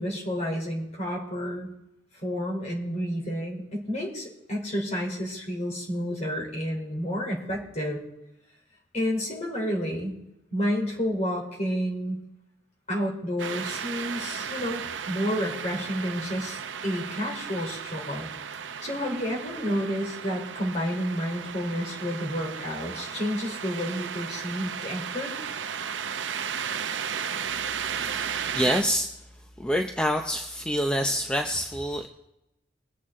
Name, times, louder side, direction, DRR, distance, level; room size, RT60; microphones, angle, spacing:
voice 1, 0.0-1.7 2.2-8.0 8.9-10.1 10.5-12.2 12.9-18.3 18.8-25.3, equal, 40° left, -1 dB, 3.7 m, -30 dB
sound 1, 13.4-28.8, right 7 dB, 80° right, 0.7 m, -35 dB
voice 2, 28.0-29.1 29.6-32.1, equal, 5° left, 4 dB, 0.6 m, -27 dB
21.5 x 8.4 x 3.7 m, 0.88 s
head